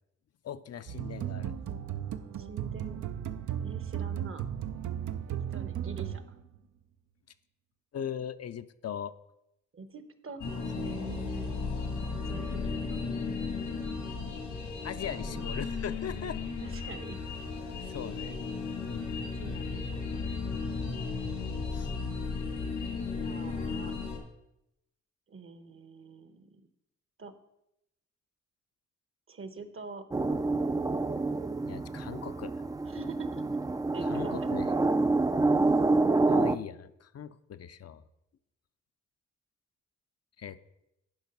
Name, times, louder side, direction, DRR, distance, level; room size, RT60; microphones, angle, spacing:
voice 1, 0.4-1.5 7.9-9.1 14.8-16.4 17.8-18.4 21.7-21.9 31.6-32.5 34.0-34.7 36.3-38.0 40.4-40.6, left 8 dB, 55° left, 11 dB, 0.5 m, -39 dB
sound 1, 0.9-6.6, right 10 dB, 80° right, 0.6 m, -35 dB
voice 2, 2.4-3.1 3.6-4.5 5.5-6.2 9.7-10.4 10.7-11.5 12.2-13.0 15.3-15.6 16.6-17.2 19.1-20.2 23.2-24.0 25.3-26.7 27.2-27.3 29.3-30.0 32.9-33.4 33.9-34.5, right 3 dB, 45° right, 11 dB, 0.9 m, -45 dB
sound 2, 10.4-24.2, left 4 dB, 85° left, 1.9 m, -35 dB
sound 3, 30.1-36.6, right 3 dB, 15° right, 0.3 m, -27 dB
10.5 x 5.0 x 5.4 m, 0.85 s
cardioid pair, 75°, 29 cm